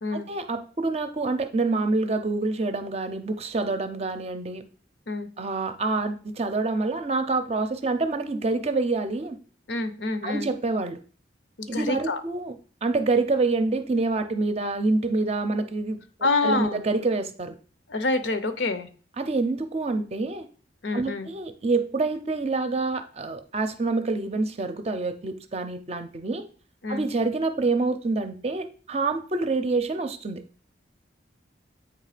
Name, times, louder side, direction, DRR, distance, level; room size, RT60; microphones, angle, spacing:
voice 1, 0.1-4.6 5.4-9.4 10.2-11.0 11.7-12.6 12.8-16.0 16.4-17.6 19.2-20.5 20.9-26.5 26.9-30.4, right 3 dB, 35° right, 8 dB, 0.6 m, -27 dB
voice 2, 9.7-10.5 11.6-12.2 16.2-16.8 17.9-18.9 20.8-21.3 26.8-27.0, left 3 dB, 75° left, 10 dB, 0.8 m, -27 dB
8.0 x 3.2 x 5.0 m, 0.40 s
head